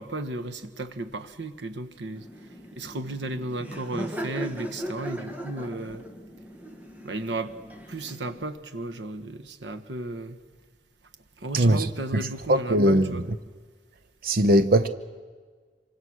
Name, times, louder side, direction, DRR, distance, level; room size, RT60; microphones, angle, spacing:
voice 1, 0.0-2.3 2.7-6.0 7.0-7.5 7.9-10.4 11.4-13.3, right 2 dB, 85° right, 1.4 m, -34 dB
Laughter, 2.1-8.4, right 1 dB, 10° right, 1.9 m, -38 dB
voice 2, 11.5-11.9 12.5-13.2 14.2-14.9, right 1 dB, 55° right, 0.8 m, -20 dB
26.5 x 24.5 x 6.4 m
head